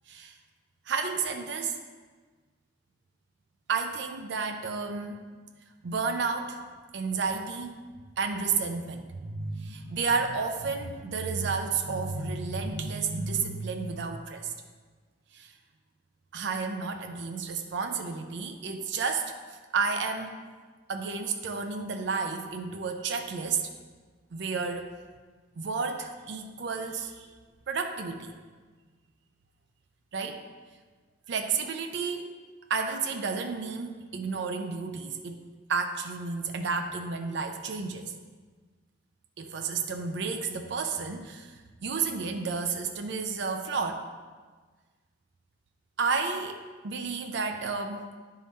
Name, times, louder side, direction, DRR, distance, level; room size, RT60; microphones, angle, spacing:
voice 1, 0.9-1.8 3.7-5.2 5.8-6.6 6.9-7.8 8.2-14.5 15.3-15.5 16.3-19.3 19.7-20.4 20.9-23.7 24.3-24.9 25.6-27.3 27.7-28.3 30.1-30.4 31.3-32.3 32.7-35.4 35.7-38.1 39.4-41.5 41.8-44.1 46.0-48.0, right 4 dB, 65° right, 5 dB, 0.5 m, -31 dB
9.6 x 3.8 x 4.1 m, 1.4 s
head